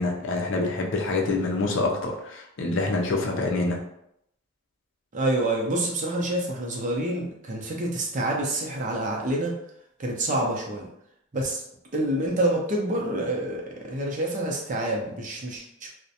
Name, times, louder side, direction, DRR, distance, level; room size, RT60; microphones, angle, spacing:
voice 1, 0.0-3.8, left 2 dB, 65° left, 1 dB, 0.5 m, -26 dB
voice 2, 5.1-9.6 10.0-10.9 11.3-11.6 11.9-15.9, right 1 dB, 40° right, -1 dB, 0.5 m, -27 dB
2.4 x 2.1 x 2.7 m, 0.76 s
head